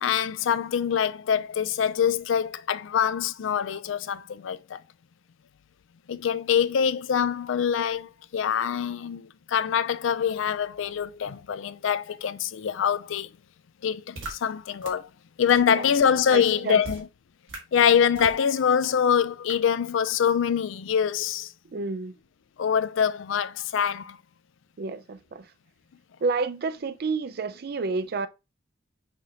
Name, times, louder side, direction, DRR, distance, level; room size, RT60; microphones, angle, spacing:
voice 1, 0.0-4.8 6.1-13.3 13.8-15.1 15.4-17.1 17.7-21.5 22.6-24.2, left 7 dB, 75° left, 0.4 m, -24 dB
sound 1, 14.2-14.3 14.8-14.9 15.5-15.6 16.2-16.3 16.8-17.0 17.5-17.6 18.2-18.4 18.8-18.9 19.5-19.6, right 2 dB, 80° right, 1.5 m, -37 dB
voice 2, 16.3-16.8 21.7-22.1 24.8-25.5 26.2-28.3, right 4 dB, 50° right, 0.4 m, -29 dB
5.7 x 2.8 x 3.1 m
head